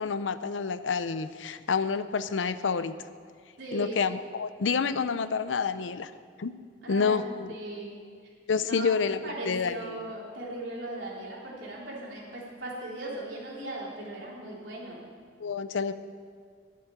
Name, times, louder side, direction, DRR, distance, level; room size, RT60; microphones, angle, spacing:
voice 1, 0.0-3.1 3.7-6.1 6.4-6.5 6.9-7.5 8.5-9.7 15.4-15.9, left 5 dB, 85° left, 13 dB, 0.6 m, -28 dB
voice 2, 3.6-3.9 6.8-7.2 7.5-8.0 8.6-15.0, right 1 dB, 75° right, -4 dB, 3.5 m, -38 dB
11.5 x 7.6 x 9.0 m, 2.1 s
head